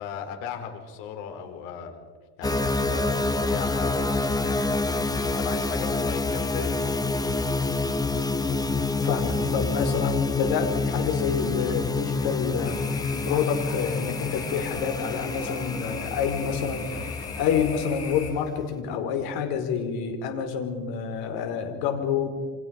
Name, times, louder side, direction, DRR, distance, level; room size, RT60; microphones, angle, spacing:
voice 1, 0.0-1.9 2.4-6.9, left 8 dB, 80° left, 5 dB, 4.9 m, -37 dB
sound 1, 2.4-18.7, left 3 dB, 10° left, 1.0 m, -28 dB
voice 2, 8.9-12.8 13.1-22.3, left 7 dB, 65° left, 5 dB, 4.7 m, -28 dB
sound 2, 12.6-18.3, left 6 dB, 35° left, 4.8 m, -38 dB
29.0 x 26.5 x 5.3 m, 1.5 s
cardioid pair, 140°, 40 cm